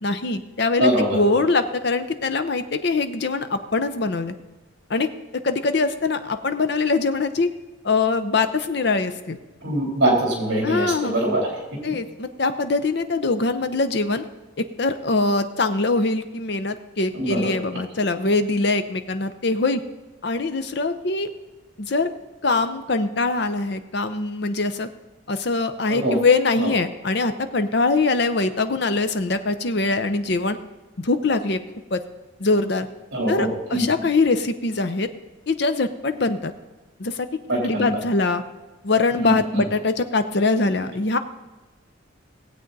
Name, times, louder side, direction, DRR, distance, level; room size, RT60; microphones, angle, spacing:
voice 1, 0.0-4.3 4.9-5.1 5.4-7.5 7.8-9.4 10.6-11.1 11.8-14.2 14.6-19.8 20.2-21.3 21.8-22.1 22.4-24.9 25.3-30.6 31.0-31.6 31.9-32.0 32.4-32.9 33.3-35.1 35.5-36.5 37.0-38.4 38.8-41.2, left 3 dB, 55° left, 10 dB, 0.7 m, -23 dB
voice 2, 0.8-1.2 9.6-11.4 17.1-17.5 25.9-26.1 26.6-26.7 33.1-33.8 37.5-37.9 39.2-39.6, right 1 dB, 55° right, -1 dB, 3.3 m, -23 dB
18.0 x 8.0 x 4.0 m, 1.2 s
head